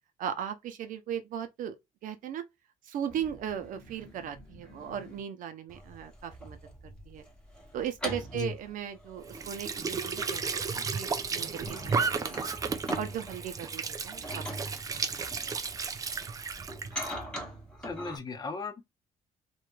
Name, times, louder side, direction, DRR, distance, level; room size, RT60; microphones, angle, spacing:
voice 1, 0.2-1.8 2.0-2.4 2.8-6.6 6.8-7.2 7.7-10.4 10.7-12.4 13.0-15.4, right 9 dB, 65° right, 0.6 m, -37 dB
sound 1, 3.1-5.2 5.7-18.2, equal, 5° left, 1.0 m, -44 dB
Squeak / Sink (filling or washing) / Trickle dribble, 9.2-17.1, right 5 dB, 25° right, 0.4 m, -33 dB
voice 2, 17.8-18.8, left 4 dB, 25° left, 0.7 m, -36 dB
3.2 x 3.0 x 2.2 m
cardioid pair, 145°, 15 cm